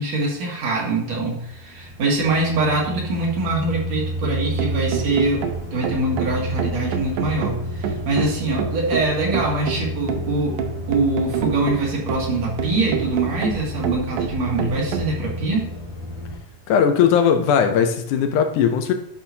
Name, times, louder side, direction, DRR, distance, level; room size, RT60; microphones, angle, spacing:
voice 1, 0.0-10.6 10.9-15.7, right 2 dB, 60° right, 2.6 m, -23 dB
sound 1, 1.3-16.4, equal, 55° left, 2.3 m, -31 dB
sound 2, 4.2-15.1, right 8 dB, 80° right, 2.1 m, -28 dB
voice 2, 16.7-18.9, left 7 dB, 80° left, 2.0 m, -18 dB
10.5 x 5.5 x 2.7 m
omnidirectional pair, 3.7 m